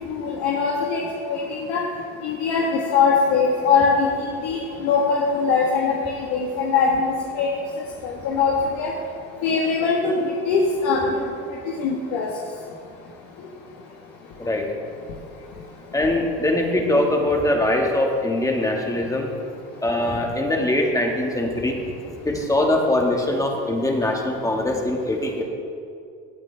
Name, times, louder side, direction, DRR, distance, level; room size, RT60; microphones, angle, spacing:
voice 1, 0.1-1.0 1.3-1.8 2.2-4.1 4.4-6.0 6.3-7.5 8.0-8.9 9.4-11.2 11.8-12.3, left 5 dB, 75° left, -2 dB, 1.6 m, -21 dB
voice 2, 15.9-19.3 19.8-21.8 22.2-25.4, left 1 dB, 10° left, 1 dB, 1.8 m, -22 dB
17.5 x 8.9 x 3.4 m, 2.4 s
supercardioid pair, 105°, 32 cm